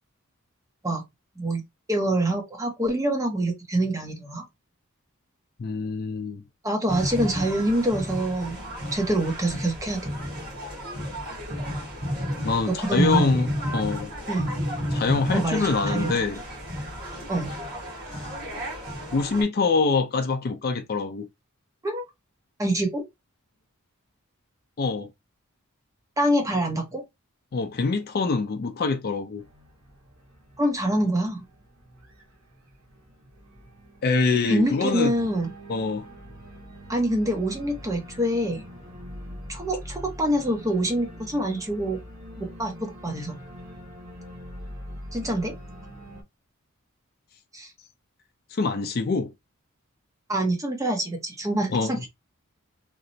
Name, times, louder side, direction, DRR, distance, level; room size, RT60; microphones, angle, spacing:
voice 1, 1.9-4.4 6.6-8.6 8.9-10.1 12.7-13.4 14.3-14.5 15.3-16.1 17.3-17.6 21.8-22.0 22.6-23.0 26.2-27.0 30.6-31.4 34.5-35.5 36.9-38.6 39.5-42.0 42.4-43.4 45.1-45.5 47.5-47.7 50.3-52.1, right 1 dB, 15° right, 0.6 m, -25 dB
voice 2, 5.6-6.4 12.4-14.1 14.9-16.4 19.1-21.3 24.8-25.1 27.5-29.4 34.0-35.1 35.7-36.1 48.5-49.3 51.7-52.1, left 4 dB, 45° left, 0.4 m, -25 dB
sound 1, 6.9-19.4, equal, 45° right, 1.3 m, -32 dB
Organ, 29.4-46.2, equal, 80° right, 1.0 m, -43 dB
2.9 x 2.0 x 2.6 m
head